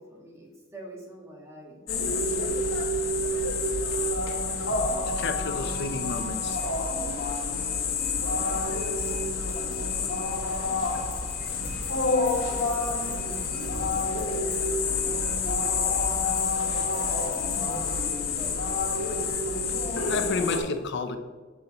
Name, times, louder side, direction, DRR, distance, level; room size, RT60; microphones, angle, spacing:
voice 1, 0.0-1.8 2.3-2.7 3.2-3.5 8.0-8.3 9.0-9.1 9.9-14.8 15.2-16.1 16.7-18.7, right 1 dB, 15° right, -1 dB, 1.4 m, -46 dB
sound 1, 1.9-20.6, left 3 dB, 80° left, 1.1 m, -28 dB
voice 2, 5.1-6.6 20.1-21.2, left 4 dB, 60° left, 8 dB, 0.5 m, -31 dB
sound 2, 9.0-15.0 16.1-16.6 16.9-18.4, left 5 dB, 25° left, 1.6 m, -50 dB
8.0 x 6.8 x 2.9 m, 1.4 s
head